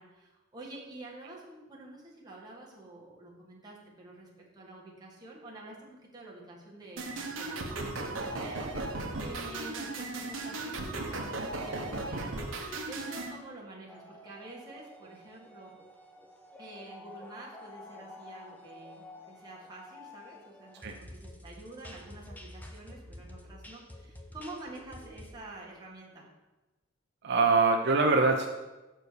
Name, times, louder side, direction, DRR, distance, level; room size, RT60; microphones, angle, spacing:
voice 1, 0.0-15.7 16.6-26.3, right 2 dB, 20° right, -5 dB, 1.8 m, -48 dB
sound 1, 7.0-13.3, right 2 dB, 75° right, 1.0 m, -36 dB
sound 2, 13.9-25.4, left 1 dB, 10° left, 0.7 m, -49 dB
voice 2, 27.2-28.5, right 3 dB, 60° right, 3 dB, 0.5 m, -23 dB
6.6 x 4.5 x 6.6 m, 1.1 s
head